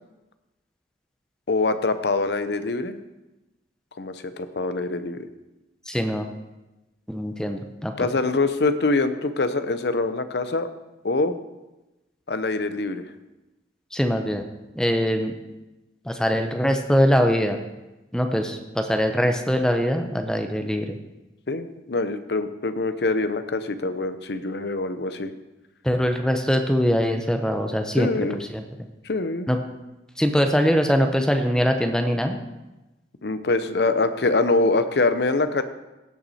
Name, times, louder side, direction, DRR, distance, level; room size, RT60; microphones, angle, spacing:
voice 1, 1.5-3.0 4.0-5.3 8.0-10.7 11.0-11.4 12.3-13.0 21.5-25.3 28.0-28.4 29.0-29.5 33.2-35.6, left 3 dB, 70° left, 11 dB, 0.7 m, -24 dB
voice 2, 5.9-6.3 7.1-8.1 13.9-14.4 14.7-15.3 16.0-17.6 18.1-21.0 25.8-28.6 29.5-29.6 30.2-32.4, equal, 5° left, 5 dB, 0.7 m, -22 dB
17.0 x 6.0 x 4.2 m, 1.0 s
head